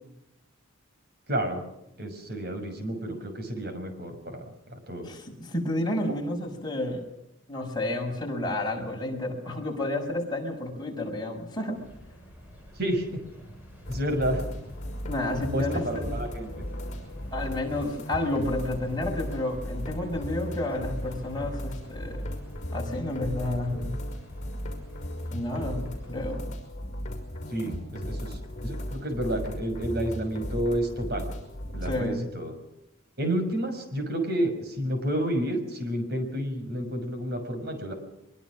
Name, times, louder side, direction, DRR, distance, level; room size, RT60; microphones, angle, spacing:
voice 1, 1.3-1.6 2.0-5.1 12.8-13.2 13.9-14.4 15.5-16.6 27.5-31.2 31.7-32.5 33.2-37.9, right 1 dB, 50° right, 6 dB, 6.0 m, -30 dB
voice 2, 5.0-7.0 7.5-11.7 15.1-16.0 17.3-22.2 22.7-24.0 25.3-26.5 31.8-32.2, left 1 dB, 20° left, 0 dB, 6.1 m, -31 dB
sound 1, 11.7-26.4, equal, 10° right, 7.4 m, -49 dB
sound 2, 13.9-32.0, equal, 35° left, 5.8 m, -36 dB
23.5 x 23.0 x 6.3 m, 0.82 s
head